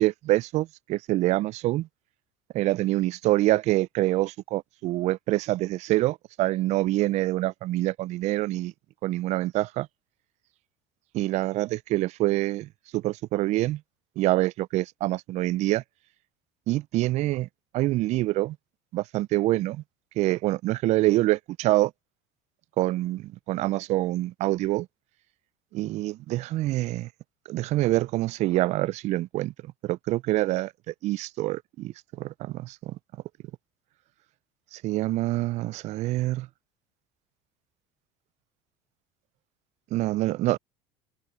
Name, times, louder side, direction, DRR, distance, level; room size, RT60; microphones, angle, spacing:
voice 1, 0.0-1.9 2.5-8.7 9.0-9.9 11.1-13.8 14.2-15.8 16.7-17.5 17.7-18.6 18.9-19.8 20.2-21.9 22.8-24.9 25.7-27.1 27.5-29.5 29.8-32.9 34.7-36.5 39.9-40.6, right 17 dB, 50° right, 0.4 m, -26 dB
hypercardioid pair, 80°, 15 cm